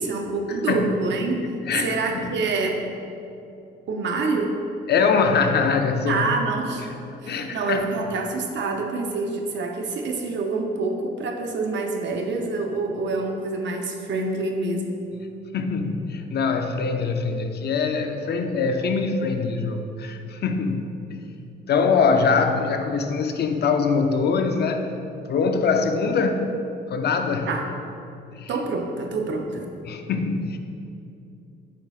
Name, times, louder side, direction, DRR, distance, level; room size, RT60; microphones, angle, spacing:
voice 1, 0.0-2.8 3.9-4.6 6.1-6.9 7.2-15.1 27.5-27.7 28.5-29.7, right 3 dB, 65° right, 3 dB, 0.8 m, -26 dB
voice 2, 1.7-2.3 4.9-6.3 7.3-7.8 15.5-21.2 21.7-24.9 25.3-26.5 26.9-27.5 28.3-28.5 29.8-30.6, left 5 dB, 55° left, 6 dB, 0.6 m, -23 dB
8.4 x 5.6 x 2.4 m, 2.7 s
cardioid pair, 90°, 20 cm